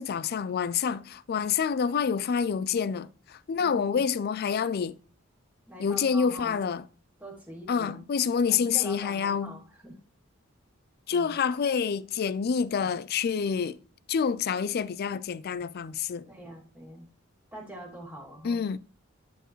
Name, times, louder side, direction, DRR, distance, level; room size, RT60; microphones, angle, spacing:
voice 1, 0.0-5.0 5.8-6.9 7.7-9.6 11.1-13.8 14.1-16.3 18.4-18.8, left 6 dB, 50° left, 0.4 m, -27 dB
voice 2, 3.6-4.0 5.7-6.6 7.2-8.0 8.5-9.9 11.1-11.4 16.3-17.0 17.5-18.7, equal, 10° right, 2.4 m, -44 dB
11.0 x 4.6 x 3.1 m
head